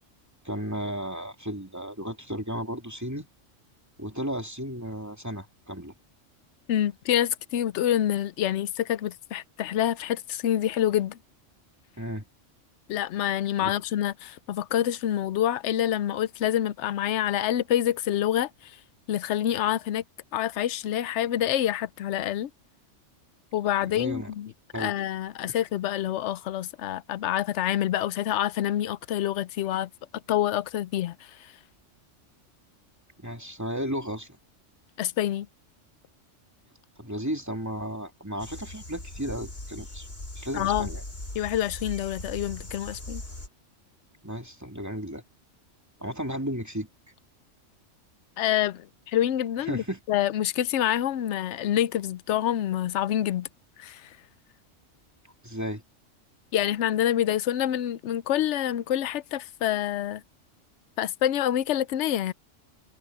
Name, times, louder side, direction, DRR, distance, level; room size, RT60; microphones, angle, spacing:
voice 1, 0.4-3.3 4.0-5.9 12.0-12.3 13.6-13.7 23.8-24.3 24.7-24.9 25.4-25.5 33.2-34.4 37.0-40.1 40.4-41.0 44.2-45.2 46.0-46.9 49.7-50.0 55.4-55.8, equal, 15° right, 2.7 m, -34 dB
voice 2, 6.7-11.2 12.9-18.7 19.1-20.0 20.3-22.5 23.5-29.9 30.3-31.5 35.0-35.5 40.5-40.9 41.3-43.2 48.4-53.5 53.8-54.2 56.5-60.2 61.0-62.3, left 11 dB, 70° left, 0.9 m, -27 dB
sound 1, 38.4-43.5, left 1 dB, 50° left, 5.2 m, -39 dB
omnidirectional pair, 1.3 m